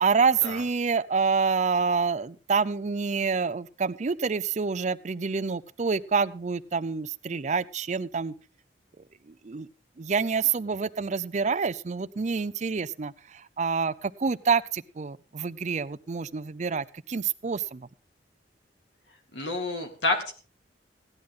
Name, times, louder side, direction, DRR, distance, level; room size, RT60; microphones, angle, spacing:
voice 1, 0.0-8.3 9.3-9.7 10.0-13.1 13.6-17.9, right 5 dB, 40° right, 0.5 m, -27 dB
voice 2, 19.3-20.3, left 2 dB, 70° left, 2.4 m, -29 dB
16.5 x 10.5 x 3.7 m
head